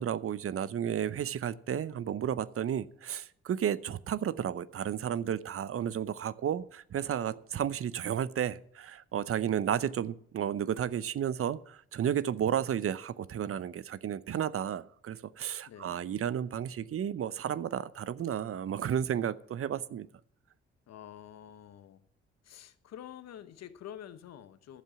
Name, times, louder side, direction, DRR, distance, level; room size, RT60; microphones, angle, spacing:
voice 1, 0.0-20.1, right 9 dB, 50° right, 0.7 m, -32 dB
voice 2, 15.7-16.0 20.9-22.0 22.4-24.8, left 10 dB, 65° left, 1.0 m, -48 dB
11.5 x 7.3 x 7.2 m
hypercardioid pair, 45°, 29 cm